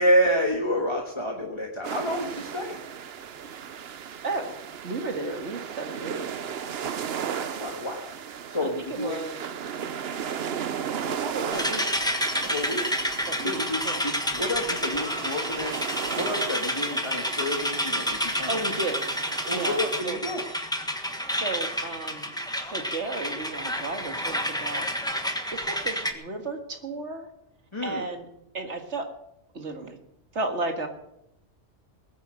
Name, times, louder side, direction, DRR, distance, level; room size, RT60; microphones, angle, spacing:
voice 1, 0.0-2.8 7.3-8.1 8.5-9.2 12.4-12.8 13.4-13.8 14.0-15.8 16.2-18.6 19.5-20.4 27.7-28.0, equal, 25° left, 0 dB, 1.6 m, -28 dB
sound 1, 1.8-20.0, right 8 dB, 65° right, 1.0 m, -36 dB
voice 2, 4.2-4.6 4.8-6.3 8.6-9.4 11.0-11.8 13.3-14.0 18.5-19.0 19.5-20.2 21.4-22.3 22.6-24.9 25.5-27.3 27.8-28.3 28.5-29.1 29.5-30.0 30.3-30.9, right 3 dB, 80° right, 5 dB, 2.2 m, -33 dB
sound 2, 11.5-26.1, equal, 5° left, 1.4 m, -29 dB
20.0 x 9.5 x 6.5 m, 0.80 s
omnidirectional pair, 1.2 m